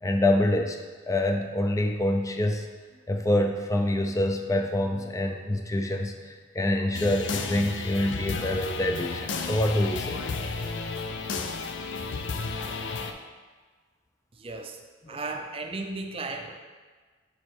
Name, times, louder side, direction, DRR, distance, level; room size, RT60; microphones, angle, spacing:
voice 1, 0.0-0.8 1.1-2.7 3.1-10.2 15.0-15.3, left 1 dB, 20° left, 4 dB, 0.5 m, -26 dB
sound 1, 6.9-13.1, left 4 dB, 80° left, 0.5 m, -33 dB
voice 2, 14.4-14.8 15.1-16.6, right 3 dB, 30° right, 4 dB, 0.5 m, -35 dB
5.0 x 4.3 x 4.5 m, 1.4 s
head